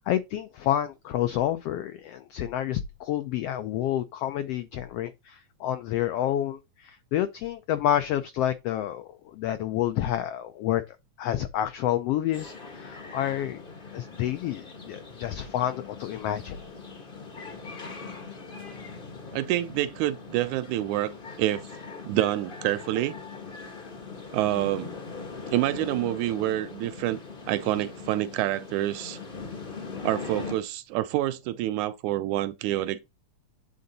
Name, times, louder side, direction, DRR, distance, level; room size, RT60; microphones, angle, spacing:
voice 1, 0.1-10.8 11.2-13.6 13.9-16.6, left 11 dB, 85° left, 1.3 m, -29 dB
sound 1, 12.3-30.5, left 4 dB, 50° left, 0.6 m, -41 dB
voice 2, 19.3-21.6 22.1-23.2 24.3-24.9 25.5-27.2 27.5-29.2 30.0-33.0, right 14 dB, 80° right, 2.0 m, -27 dB
9.4 x 3.8 x 4.0 m
omnidirectional pair, 3.6 m